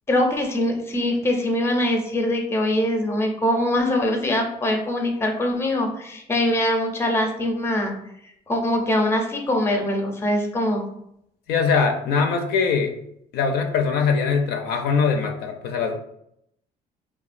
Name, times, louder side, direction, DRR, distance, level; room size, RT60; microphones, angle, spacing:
voice 1, 0.1-7.9 8.5-10.8, left 1 dB, 15° left, 3 dB, 0.5 m, -23 dB
voice 2, 11.5-12.9 13.3-16.0, left 5 dB, 70° left, 4 dB, 0.4 m, -22 dB
2.7 x 2.1 x 2.5 m, 0.75 s
cardioid pair, 110°, 17 cm